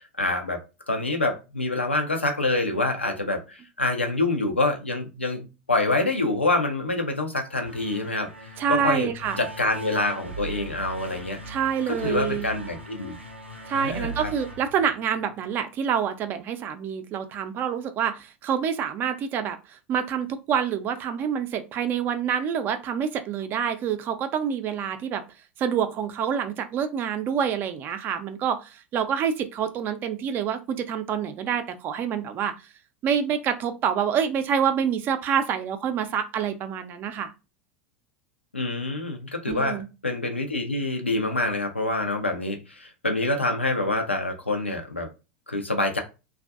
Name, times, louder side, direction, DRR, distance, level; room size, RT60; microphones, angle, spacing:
voice 1, 0.2-8.3 8.7-9.1 9.4-11.4 11.9-13.2 13.7-14.3 38.5-45.1 45.5-46.0, left 2 dB, 85° left, 0.4 m, -26 dB
sound 1, 7.6-15.5, right 2 dB, 90° right, 0.5 m, -40 dB
voice 2, 8.6-9.4 11.5-12.5 13.7-25.2 25.6-32.5 33.0-37.3 39.5-39.9, right 8 dB, 35° right, 0.4 m, -27 dB
2.5 x 2.3 x 2.3 m
figure-of-eight pair, 80°, 6 cm